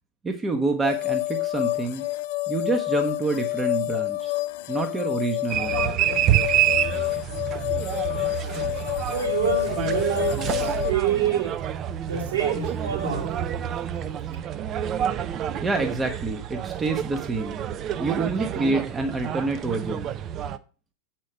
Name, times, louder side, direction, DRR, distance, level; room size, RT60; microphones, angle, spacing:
voice 1, 0.2-2.0 2.5-4.3 4.7-5.9 15.6-17.6 18.0-20.1, right 3 dB, 15° right, 0.9 m, -27 dB
sound 1, 0.8-10.9, left 19 dB, 50° left, 0.4 m, -28 dB
sound 2, 5.5-20.6, right 10 dB, 30° right, 0.5 m, -28 dB
voice 2, 9.1-11.6 12.0-13.4, right 8 dB, 65° right, 3.0 m, -27 dB
7.5 x 4.4 x 6.1 m
figure-of-eight pair, 90°, 0 cm